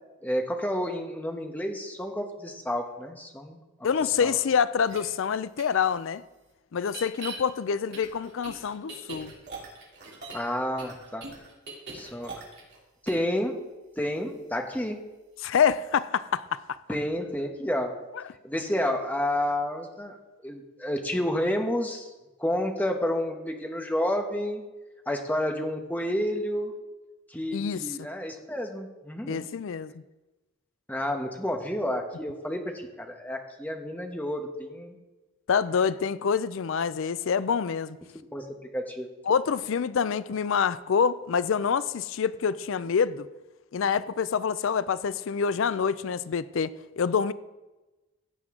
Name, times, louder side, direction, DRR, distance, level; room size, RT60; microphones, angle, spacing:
voice 1, 0.2-3.6 4.2-4.3 10.3-11.2 11.9-12.4 13.0-13.6 14.0-15.0 16.9-17.9 18.4-20.2 20.4-22.1 22.4-24.6 25.1-26.7 27.3-29.5 30.9-35.0 38.1-39.1, left 1 dB, 10° left, 1.1 m, -30 dB
voice 2, 3.8-6.2 6.7-9.3 15.4-16.8 18.1-18.2 27.5-27.8 29.3-29.9 35.5-38.0 39.3-43.3 43.7-47.3, left 6 dB, 65° left, 0.4 m, -26 dB
sound 1, 4.8-5.0 5.6-5.7 6.8-7.4 7.9-10.5 10.8-12.8 13.1-13.3, right 4 dB, 50° right, 3.1 m, -41 dB
15.5 x 9.0 x 3.7 m
head